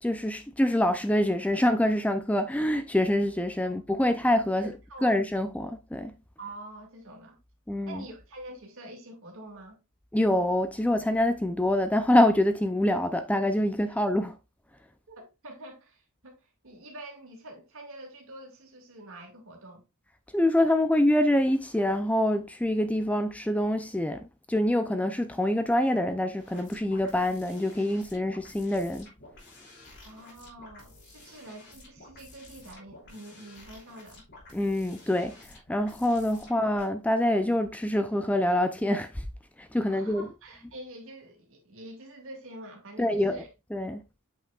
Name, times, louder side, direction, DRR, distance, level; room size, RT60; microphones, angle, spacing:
voice 1, 0.0-4.7 5.0-6.1 7.7-8.1 10.1-14.4 20.3-29.1 34.5-35.4 35.7-39.1 39.6-40.3 43.0-43.4 43.7-44.0, left 1 dB, 5° left, 0.4 m, -25 dB
voice 2, 4.6-5.1 6.4-7.4 7.9-9.8 13.9-14.0 15.1-19.8 30.0-34.2 39.8-43.5, right 1 dB, 65° right, 2.3 m, -46 dB
sound 1, 26.4-36.8, left 2 dB, 55° left, 2.9 m, -52 dB
8.3 x 5.5 x 2.4 m
head